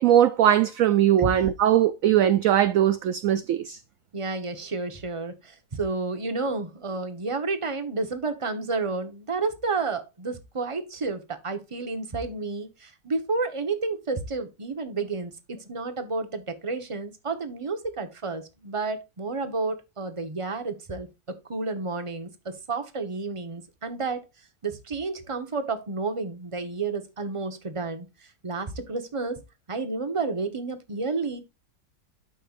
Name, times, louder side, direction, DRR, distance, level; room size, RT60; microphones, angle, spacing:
voice 1, 0.0-3.8, right 11 dB, 70° right, 0.8 m, -20 dB
voice 2, 4.1-24.2 24.6-28.1 28.4-29.4 29.7-31.4, right 3 dB, 20° right, 1.0 m, -31 dB
12.5 x 5.6 x 2.5 m
omnidirectional pair, 1.9 m